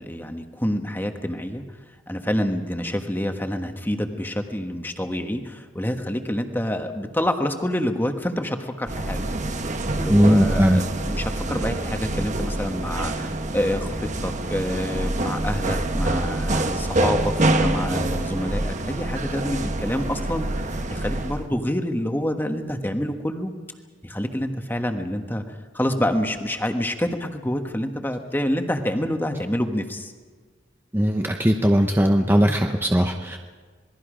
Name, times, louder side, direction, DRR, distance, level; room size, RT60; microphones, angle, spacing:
voice 1, 0.0-1.8 2.1-9.3 9.9-23.5 24.0-30.1, left 1 dB, 10° left, 5 dB, 1.4 m, -27 dB
sound 1, 8.9-21.5, right 2 dB, 40° right, 1.2 m, -26 dB
voice 2, 10.1-10.8 30.9-33.4, equal, 10° right, 3 dB, 0.9 m, -19 dB
27.0 x 20.5 x 5.1 m, 1.4 s
head